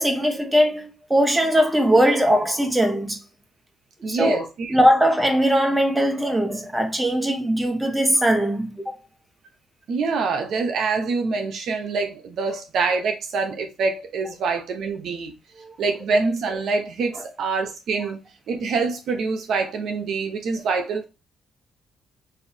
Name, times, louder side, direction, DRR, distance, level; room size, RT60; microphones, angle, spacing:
voice 1, 0.0-3.2 4.0-4.4 4.7-9.0 15.6-15.7, equal, 10° right, 1.3 m, -20 dB
voice 2, 4.0-4.7 9.9-15.3 15.8-18.2 18.5-21.1, right 4 dB, 70° right, 0.9 m, -25 dB
6.3 x 2.7 x 2.8 m
cardioid pair, 90°, 0 cm